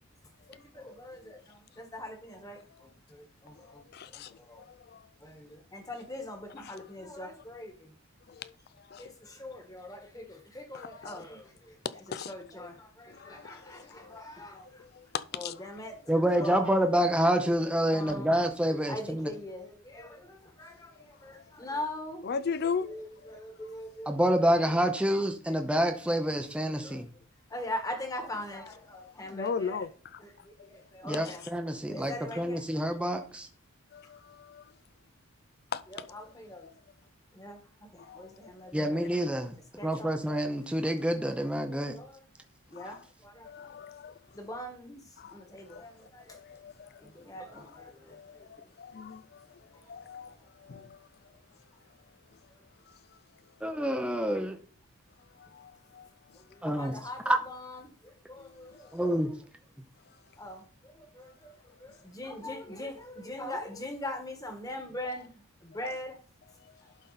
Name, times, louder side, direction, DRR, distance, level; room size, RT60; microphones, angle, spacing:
voice 1, 0.5-3.8 4.1-4.6 5.2-7.9 9.0-11.8 12.3-14.8 15.3-16.0 16.3-16.8 17.4-17.6 17.9-22.3 22.8-25.0 26.8-27.0 27.5-28.8 29.2-29.8 30.2-31.4 31.8-32.6 35.9-36.7 37.3-39.1 39.7-40.1 41.6-42.3 42.7-43.9 44.3-46.4 46.9-48.5 49.7-50.4 50.7-50.8 56.3-59.2 60.4-66.2, left 1 dB, 15° left, 1.4 m, -42 dB
voice 2, 3.6-5.1 6.6-6.8 8.3-9.1 10.7-11.2 12.1-12.5 13.1-14.2 14.6-15.6 21.3-21.4 22.2-23.0 23.2-23.4 29.3-30.2 31.2-31.4 33.9-34.4 35.7-35.8 38.0-38.3 38.6-38.7 42.7-43.0 43.4-44.2 45.2-45.4 45.7-45.8 46.3-46.9 47.5-51.1 52.9-53.0 55.4-56.4 56.8-56.9 58.4-58.9 66.6-66.7, left 6 dB, 50° left, 0.4 m, -39 dB
voice 3, 16.1-19.3 24.1-27.1 31.0-33.5 38.7-39.5 39.8-41.9 53.6-54.6 56.6-56.9 57.3-57.4 58.9-59.3, equal, 5° right, 0.6 m, -27 dB
11.0 x 4.0 x 4.0 m
head